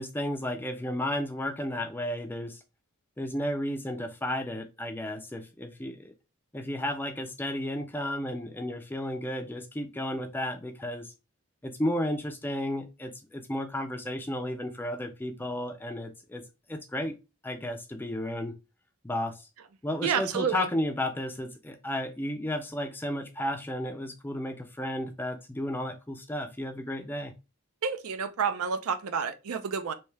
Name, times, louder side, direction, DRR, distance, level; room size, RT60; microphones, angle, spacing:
voice 1, 0.0-2.6 3.2-6.1 6.5-11.1 11.6-17.2 17.4-18.6 19.0-19.5 19.8-27.3, left 1 dB, 10° left, 0.3 m, -33 dB
voice 2, 20.0-20.7 27.8-29.9, right 6 dB, 75° right, 0.5 m, -29 dB
3.3 x 2.7 x 3.1 m
head